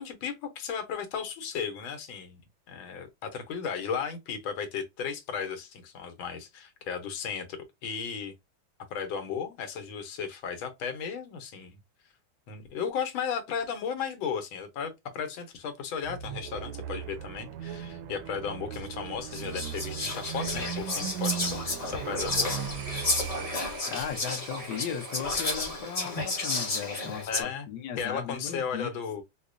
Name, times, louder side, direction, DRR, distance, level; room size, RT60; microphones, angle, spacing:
voice 1, 0.0-2.4 2.7-8.3 8.9-11.8 12.5-22.5 27.3-27.7 28.0-29.2, left 6 dB, 85° left, 1.6 m, -35 dB
sound 1, 16.0-23.7, right 9 dB, 90° right, 1.4 m, -37 dB
Whispering, 18.7-18.8 19.3-27.4, left 2 dB, 35° left, 0.5 m, -32 dB
sound 2, 22.6-26.9, right 8 dB, 65° right, 0.8 m, -46 dB
voice 2, 23.9-28.9, left 8 dB, 65° left, 1.2 m, -37 dB
4.7 x 2.1 x 2.5 m
omnidirectional pair, 2.1 m